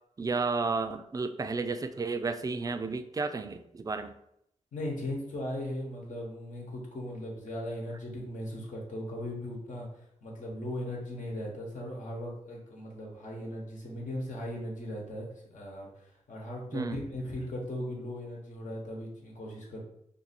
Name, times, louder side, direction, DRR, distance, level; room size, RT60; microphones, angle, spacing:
voice 1, 0.2-4.1 16.7-17.0, right 4 dB, 30° right, 9 dB, 0.3 m, -32 dB
voice 2, 4.7-9.9 10.2-19.8, left 1 dB, 75° left, -2 dB, 1.2 m, -38 dB
2.7 x 2.7 x 4.2 m, 0.75 s
cardioid pair, 70°, 13 cm